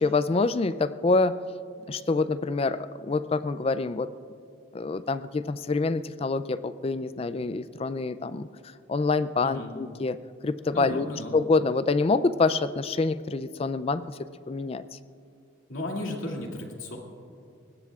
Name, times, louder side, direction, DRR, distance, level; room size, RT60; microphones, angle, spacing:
voice 1, 0.0-1.4 1.9-4.1 4.7-8.5 8.9-10.2 10.4-11.1 11.3-14.2 14.5-15.0, left 3 dB, 30° left, 14 dB, 0.3 m, -26 dB
voice 2, 9.4-9.7 10.7-11.3 15.7-17.0, left 1 dB, 85° left, 0 dB, 2.4 m, -34 dB
23.5 x 20.5 x 2.4 m, 2.4 s
head